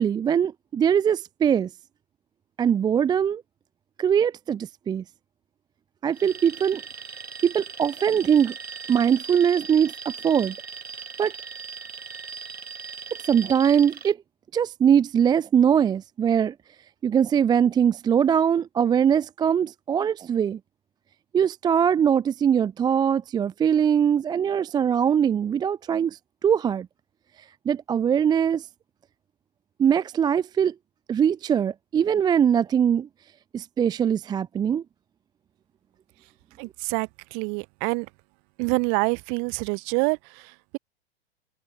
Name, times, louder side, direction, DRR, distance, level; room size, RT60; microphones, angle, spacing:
voice 1, 0.0-1.7 2.6-3.4 4.0-5.0 6.0-6.8 7.4-8.5 8.9-10.5 11.2-11.3 13.2-14.2 14.5-16.5 17.0-20.6 21.3-26.9 27.7-28.7 29.8-30.7 31.1-33.1 33.5-34.8, right 8 dB, 15° right, 0.6 m, -22 dB
Alarm, 6.1-14.1, right 6 dB, 75° right, 4.9 m, -39 dB
voice 2, 36.6-38.1 38.6-40.8, right 40 dB or more, 40° right, 6.4 m, -27 dB
figure-of-eight pair, 100°, 32 cm